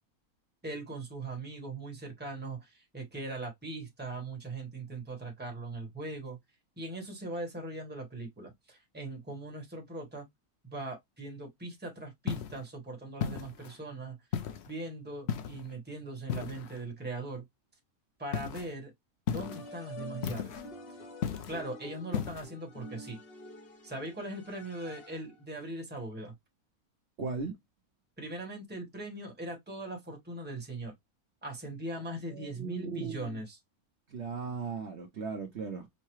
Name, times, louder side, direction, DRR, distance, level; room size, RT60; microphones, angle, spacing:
voice 1, 0.6-6.4 6.8-10.2 10.7-14.2 14.6-17.4 18.2-18.9 19.3-20.6 21.5-23.2 23.8-26.3 28.2-30.9 31.4-33.6, right 2 dB, 10° right, 1.1 m, -40 dB
sound 1, 12.3-12.6 13.2-13.8 14.3-14.7 15.3-15.7 16.3-16.8 18.3-18.7 19.3-19.7 20.2-20.7 21.2-21.6 22.1-22.5, left 8 dB, 60° left, 0.7 m, -35 dB
sound 2, 19.3-25.4, left 2 dB, 45° left, 1.0 m, -48 dB
voice 2, 27.2-27.5 32.3-33.4 34.1-35.9, right 4 dB, 55° right, 1.0 m, -37 dB
5.6 x 2.1 x 3.0 m
omnidirectional pair, 1.5 m